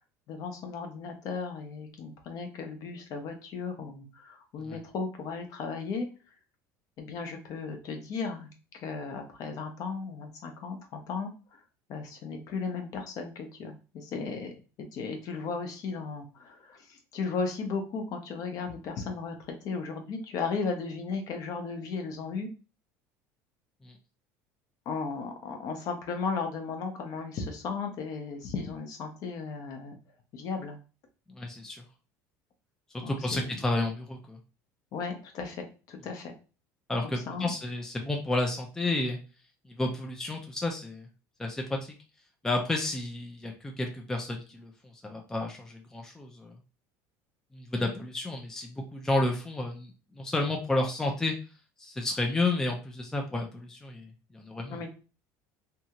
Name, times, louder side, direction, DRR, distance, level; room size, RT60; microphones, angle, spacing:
voice 1, 0.3-6.1 7.0-8.5 8.7-11.6 11.9-14.5 14.9-19.3 19.6-22.5 24.9-30.0 30.3-30.8 33.0-33.6 34.9-36.3 37.0-37.5 54.7-54.9, left 4 dB, 50° left, 4 dB, 0.7 m, -35 dB
voice 2, 31.4-31.8 32.9-34.4 36.9-39.2 39.8-41.0 41.4-41.9 42.4-44.7 45.0-46.5 47.5-49.9 50.2-51.3 51.8-54.1 54.3-54.8, left 2 dB, 5° left, 2 dB, 0.4 m, -31 dB
2.7 x 2.3 x 2.8 m, 0.34 s
cardioid pair, 135°, 8 cm